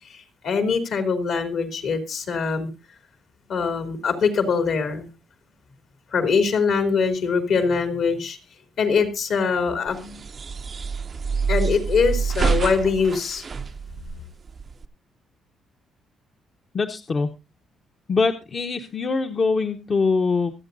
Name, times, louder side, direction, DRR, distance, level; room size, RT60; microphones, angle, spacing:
voice 1, 0.4-2.7 3.5-5.1 6.1-8.4 8.8-10.2 11.5-13.4, left 5 dB, 70° left, 7 dB, 2.8 m, -23 dB
sound 1, 9.9-14.9, right 5 dB, 40° right, 0.6 m, -27 dB
voice 2, 16.7-17.3 18.1-20.5, left 4 dB, 40° left, 5 dB, 0.9 m, -23 dB
24.5 x 8.4 x 2.6 m, 0.26 s
cardioid pair, 90°, 0 cm